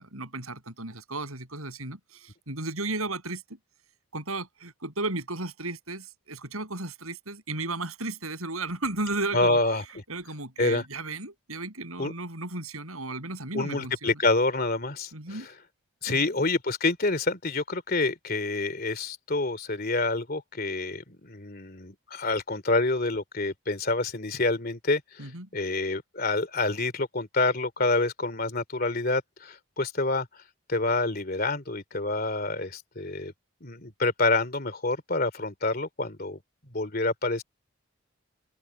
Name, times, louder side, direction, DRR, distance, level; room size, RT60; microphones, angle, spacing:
voice 1, 0.0-3.6 4.1-9.6 10.1-14.2 15.1-15.5 16.1-16.2 25.2-25.5, right 2 dB, 85° right, 7.5 m, -34 dB
voice 2, 9.3-9.8 10.6-10.8 12.0-12.1 13.5-15.5 16.0-30.3 30.7-33.3 33.6-36.4 36.7-37.4, left 2 dB, 45° left, 2.9 m, -27 dB
head